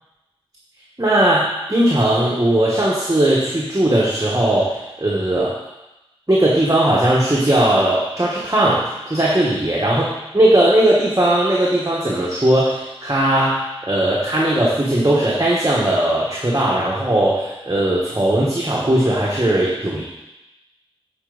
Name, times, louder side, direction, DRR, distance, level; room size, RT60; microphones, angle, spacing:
voice 1, 1.0-5.6 6.3-10.0 10.3-13.6 13.9-20.0, right 1 dB, 35° right, -5 dB, 1.3 m, -18 dB
8.3 x 4.4 x 4.0 m, 0.97 s
wide cardioid pair, 40°, 10 cm